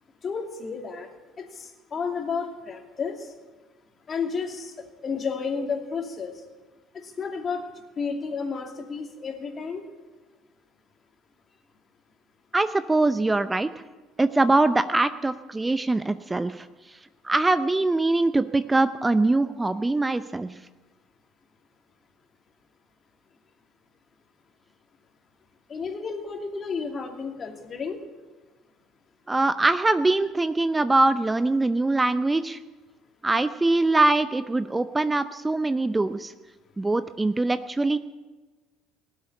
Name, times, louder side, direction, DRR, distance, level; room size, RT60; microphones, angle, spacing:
voice 1, 0.2-1.1 1.4-3.3 4.1-6.4 7.0-7.7 8.0-9.8 25.7-28.0, left 5 dB, 40° left, 4 dB, 2.6 m, -32 dB
voice 2, 12.5-13.7 14.2-16.7 17.2-20.6 29.3-32.6 33.2-36.3 36.8-38.0, right 2 dB, 15° right, 13 dB, 0.6 m, -23 dB
18.5 x 7.9 x 9.8 m, 1.3 s
hypercardioid pair, 60°, 0 cm